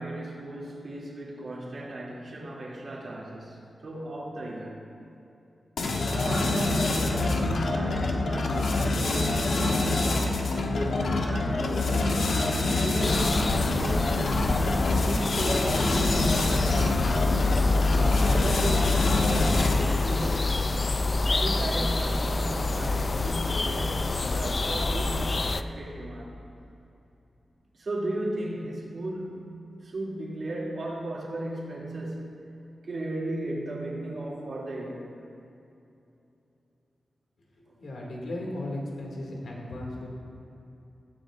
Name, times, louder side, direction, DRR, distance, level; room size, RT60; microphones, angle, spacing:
voice 1, 0.0-4.9 6.1-14.4 14.9-17.4 17.9-20.7 21.2-24.0 24.3-26.4 27.7-29.5 29.8-32.4 32.8-35.1, right 1 dB, 50° right, -5 dB, 2.7 m, -35 dB
sound 1, 5.8-20.0, left 2 dB, 70° left, 1.1 m, -26 dB
sound 2, 13.0-25.6, left 3 dB, 30° left, 0.3 m, -27 dB
voice 2, 37.8-40.1, left 1 dB, 90° left, -2 dB, 2.3 m, -35 dB
16.5 x 14.0 x 2.5 m, 2.8 s
wide cardioid pair, 180°, 0 cm